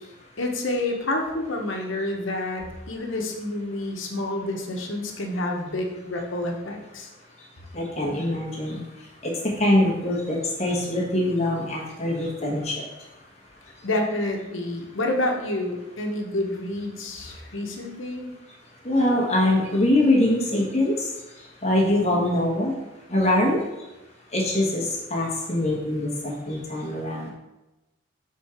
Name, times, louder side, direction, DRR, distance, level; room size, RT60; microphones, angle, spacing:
voice 1, 0.4-7.1 13.8-18.3, left 1 dB, 75° left, 2 dB, 1.0 m, -28 dB
voice 2, 7.7-8.8 9.2-12.8 18.8-21.1 21.4-22.7 23.1-23.6 24.3-27.3, left 1 dB, 35° left, -3 dB, 1.2 m, -23 dB
6.3 x 3.7 x 4.4 m, 1.0 s
head